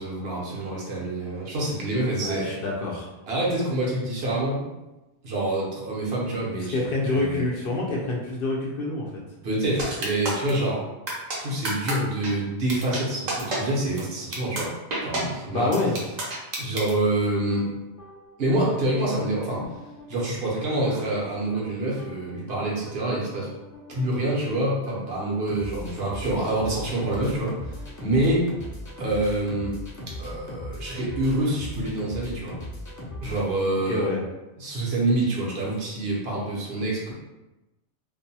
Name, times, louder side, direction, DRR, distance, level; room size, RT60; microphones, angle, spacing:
voice 1, 0.0-2.5 3.3-4.7 5.2-6.7 7.1-7.4 9.4-10.8 11.4-14.7 15.0-15.7 16.6-17.7 18.4-19.6 20.1-23.5 23.9-28.5 29.0-29.7 30.2-32.6 33.2-34.1 34.6-37.1, right 1 dB, 70° right, -4 dB, 1.0 m, -26 dB
voice 2, 2.2-3.1 6.7-9.1 15.5-15.9 33.9-34.2, left 2 dB, 60° left, -3 dB, 0.7 m, -26 dB
sound 1, 9.8-10.5 11.1-11.4 11.6-11.9 12.2-12.3 12.7-13.0 13.3-13.6 14.0-14.1 14.3-14.6 14.9-15.2 15.7-16.9, right 2 dB, 50° right, 0.6 m, -28 dB
sound 2, 17.5-34.1, left 1 dB, 25° left, 0.4 m, -40 dB
2.5 x 2.2 x 2.7 m, 1.0 s
omnidirectional pair, 1.1 m